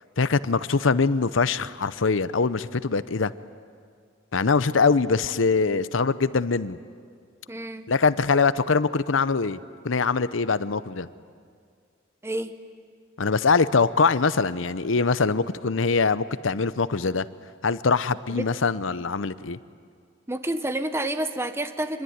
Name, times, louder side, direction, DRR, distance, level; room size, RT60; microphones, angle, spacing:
voice 1, 0.2-3.3 4.3-6.8 7.9-9.6 9.8-11.1 13.2-17.3 17.6-19.6, left 4 dB, 80° left, 15 dB, 0.8 m, -23 dB
voice 2, 7.5-7.9 12.2-12.5 18.3-18.5 20.3-22.0, right 1 dB, 15° right, 9 dB, 1.1 m, -29 dB
26.0 x 21.5 x 9.5 m, 2.1 s
head